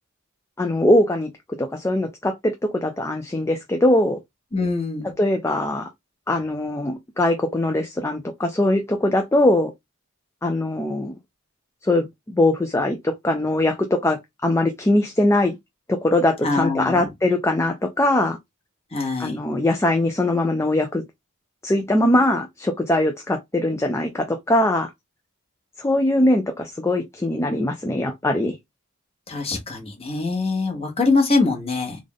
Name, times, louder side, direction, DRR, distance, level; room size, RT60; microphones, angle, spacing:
voice 1, 0.6-1.3 1.6-4.2 5.2-5.9 6.3-9.7 10.4-11.1 11.8-15.6 15.9-18.4 19.2-21.0 21.6-24.9 25.8-28.6, left 1 dB, 15° left, 0.4 m, -21 dB
voice 2, 4.5-5.1 16.4-17.1 18.9-19.4 29.3-32.0, left 3 dB, 30° left, 1.2 m, -23 dB
3.5 x 2.4 x 3.6 m
head